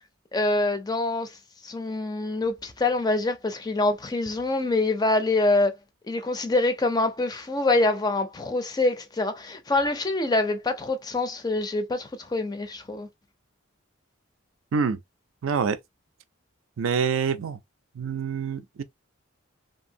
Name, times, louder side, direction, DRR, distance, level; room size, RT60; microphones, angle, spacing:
voice 1, 0.3-1.4 1.6-5.7 6.1-13.1, left 2 dB, 20° left, 0.4 m, -25 dB
voice 2, 15.4-15.8 16.8-17.6 18.0-18.8, right 6 dB, 70° right, 0.4 m, -26 dB
2.7 x 2.6 x 2.7 m
head